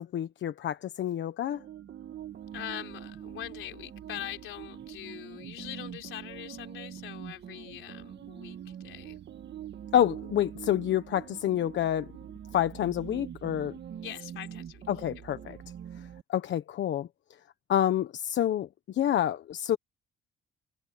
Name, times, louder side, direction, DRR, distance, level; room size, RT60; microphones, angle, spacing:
voice 1, 0.0-1.6 9.9-12.1 12.5-13.7 14.9-15.6 16.3-17.1 17.7-19.8, left 11 dB, 70° left, 1.3 m, -28 dB
sound 1, 1.4-16.2, right 9 dB, 60° right, 1.8 m, -44 dB
voice 2, 2.5-9.2 14.0-14.8, left 13 dB, 85° left, 4.0 m, -42 dB
cardioid pair, 90°, 20 cm